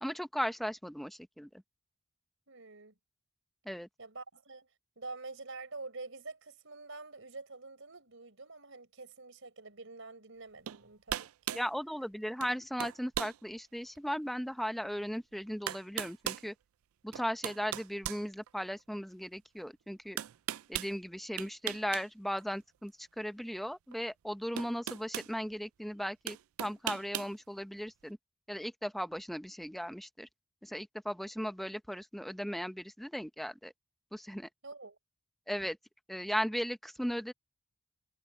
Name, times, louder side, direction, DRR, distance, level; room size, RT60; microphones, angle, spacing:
voice 1, 0.0-1.6 3.6-3.9 11.5-16.5 17.0-20.2 20.7-28.2 28.5-30.3 30.6-33.7 34.1-34.5 35.5-35.8 36.1-37.3, equal, ahead, 0.8 m, -37 dB
voice 2, 2.5-2.9 4.0-4.7 5.0-11.6 34.6-35.0, right 3 dB, 65° right, 4.7 m, -47 dB
sound 1, 10.7-10.8 11.1-11.7 12.4-12.5 12.8-13.4 14.0-14.1 15.1-15.2 15.7-16.5 17.1-18.8 20.2-20.9 21.4-22.1 22.4-22.5 23.9-24.0 24.6-25.3 26.3-27.3, right 12 dB, 90° right, 0.4 m, -38 dB
head